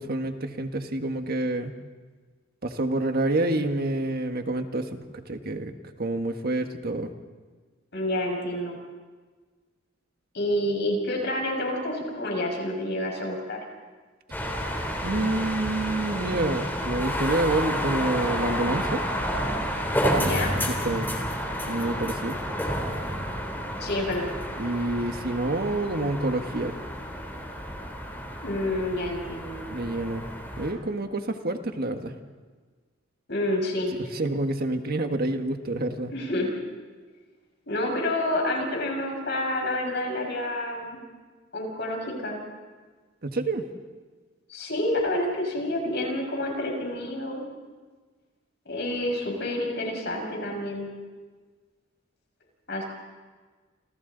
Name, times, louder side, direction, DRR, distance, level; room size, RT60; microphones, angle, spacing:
voice 1, 0.0-1.8 2.6-7.1 15.0-19.0 20.7-21.1 21.7-22.4 24.6-26.8 29.7-30.2 30.6-32.1 33.9-36.1 43.2-43.6, right 2 dB, 50° right, 6 dB, 1.5 m, -28 dB
voice 2, 7.9-8.8 10.3-13.6 20.1-20.5 23.8-24.3 28.4-29.6 33.3-33.9 36.1-36.5 37.7-41.0 41.5-42.4 44.5-47.4 48.7-50.9 52.7-52.8, left 1 dB, 60° left, 1 dB, 5.8 m, -28 dB
sound 1, 14.3-30.7, equal, 10° left, 3.4 m, -30 dB
29.5 x 27.0 x 4.0 m, 1.4 s
head